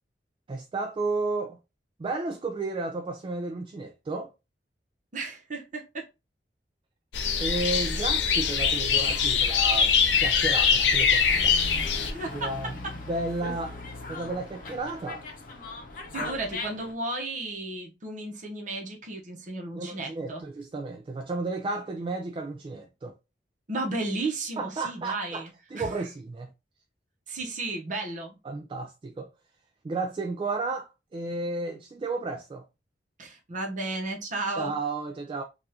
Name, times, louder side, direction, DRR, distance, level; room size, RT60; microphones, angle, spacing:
voice 1, 0.5-1.6 2.0-4.3 7.4-11.5 12.3-12.7 13.1-13.8 14.1-15.2 16.2-16.4 19.7-23.1 24.6-25.4 25.7-26.5 28.4-29.3 29.8-30.9 31.1-32.6 34.6-35.4, right 3 dB, 30° right, 0.3 m, -33 dB
voice 2, 5.1-6.1 12.1-13.0 16.1-20.4 23.7-25.9 27.3-28.4 33.2-34.7, right 2 dB, 45° right, 0.9 m, -34 dB
sound 1, 7.1-12.1, left 6 dB, 85° left, 0.5 m, -23 dB
Dog, 11.3-16.9, left 2 dB, 50° left, 0.7 m, -39 dB
3.5 x 2.4 x 2.8 m
head